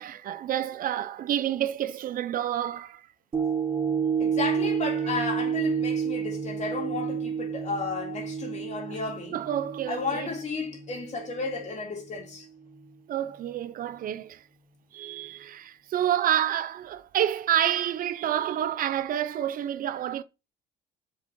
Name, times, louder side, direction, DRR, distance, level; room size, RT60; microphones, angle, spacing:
voice 1, 0.0-3.1 8.9-9.0 9.3-10.3 13.1-14.4 14.9-20.2, right 11 dB, 55° right, 0.6 m, -29 dB
sound 1, 3.3-11.7 12.2-12.3, right 7 dB, 30° right, 2.1 m, -30 dB
voice 2, 4.2-9.4 9.9-12.5, left 3 dB, 45° left, 3.4 m, -33 dB
7.1 x 5.4 x 6.2 m
cardioid pair, 110°, 17 cm